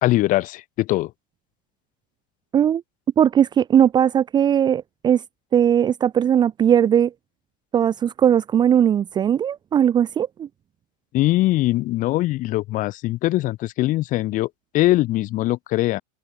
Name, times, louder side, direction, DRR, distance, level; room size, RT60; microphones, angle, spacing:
voice 1, 0.0-1.1 11.1-16.0, left 17 dB, 40° left, 3.5 m, -21 dB
voice 2, 3.2-5.2 5.5-7.1 7.7-10.5, right 9 dB, 20° right, 0.8 m, -18 dB
open air
supercardioid pair, 155°, 21 cm